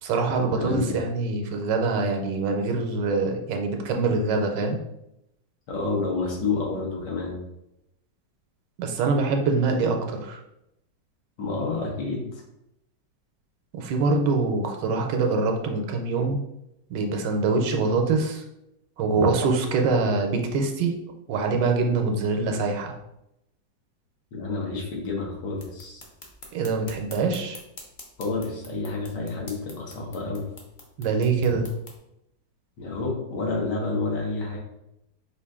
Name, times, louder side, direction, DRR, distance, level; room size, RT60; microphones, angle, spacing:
voice 1, 0.0-4.8 8.8-10.4 13.7-16.4 16.9-18.4 19.0-21.0 21.3-22.9 26.5-27.6 31.0-31.7, right 4 dB, 80° right, 4 dB, 1.2 m, -24 dB
voice 2, 0.5-1.0 5.7-7.4 11.4-12.4 24.3-26.0 28.2-30.4 32.8-34.6, left 3 dB, 70° left, -1 dB, 1.6 m, -29 dB
sound 1, 25.5-32.0, left 2 dB, 50° left, 0.5 m, -47 dB
5.0 x 2.5 x 3.5 m, 0.85 s
omnidirectional pair, 2.0 m